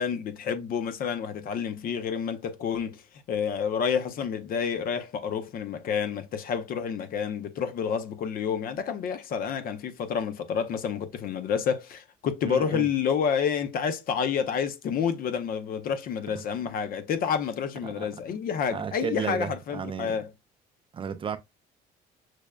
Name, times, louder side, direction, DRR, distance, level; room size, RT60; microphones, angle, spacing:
voice 1, 0.0-3.0 3.3-20.3, left 7 dB, 60° left, 0.7 m, -29 dB
voice 2, 12.4-12.9 17.8-18.1 18.7-20.2 20.9-21.4, right 6 dB, 30° right, 0.4 m, -33 dB
6.2 x 2.1 x 2.3 m
cardioid pair, 110°, 17 cm